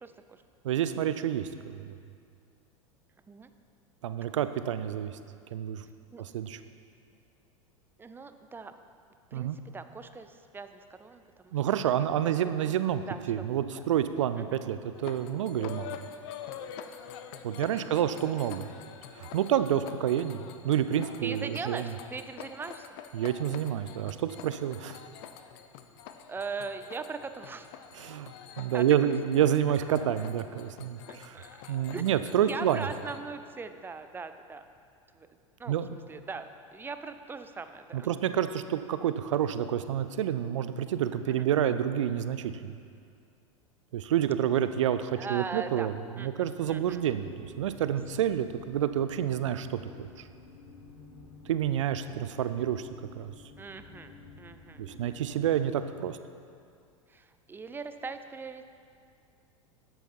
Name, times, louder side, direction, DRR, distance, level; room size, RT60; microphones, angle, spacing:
voice 1, 0.0-0.4 3.3-3.5 6.1-6.2 8.0-8.7 9.3-11.6 12.4-13.4 13.7-13.8 14.4-14.6 17.8-17.9 18.2-18.3 21.2-22.9 26.3-27.7 28.7-29.0 30.2-30.3 31.1-32.1 32.4-34.7 35.1-35.3 35.6-38.1 41.3-41.5 45.2-45.9 46.2-47.0 52.1-52.3 53.6-55.2 57.1-58.7, right 4 dB, 15° right, 9 dB, 0.5 m, -41 dB
voice 2, 0.6-2.0 4.0-5.1 5.5-5.8 6.2-6.6 9.3-9.6 11.5-13.0 13.3-15.9 17.4-18.7 19.1-21.8 23.1-25.0 28.0-28.3 28.6-31.4 31.7-32.9 35.7-35.9 37.9-42.8 43.9-45.9 46.2-50.1 51.5-52.8 53.2-53.3 54.8-56.2, right 10 dB, 65° right, 11 dB, 0.5 m, -28 dB
sound 1, 14.9-33.2, left 8 dB, 50° left, 0.6 m, -46 dB
sound 2, 46.6-55.8, left 4 dB, 90° left, 2.7 m, -52 dB
11.0 x 7.9 x 4.4 m, 2.4 s
figure-of-eight pair, 85°, 17 cm